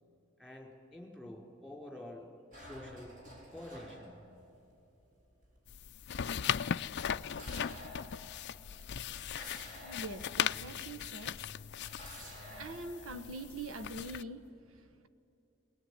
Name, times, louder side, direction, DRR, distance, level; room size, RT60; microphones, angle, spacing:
voice 1, 0.4-2.3 2.6-3.2 3.5-4.2, left 1 dB, 5° right, 1 dB, 4.1 m, -48 dB
sound 1, 2.5-11.3 11.9-14.5, equal, 40° right, 5.6 m, -53 dB
sound 2, 5.7-14.2, left 8 dB, 55° left, 0.5 m, -38 dB
voice 2, 9.8-11.5 12.2-15.1, right 2 dB, 75° right, 10 dB, 1.1 m, -44 dB
21.5 x 20.0 x 9.9 m, 2.7 s
head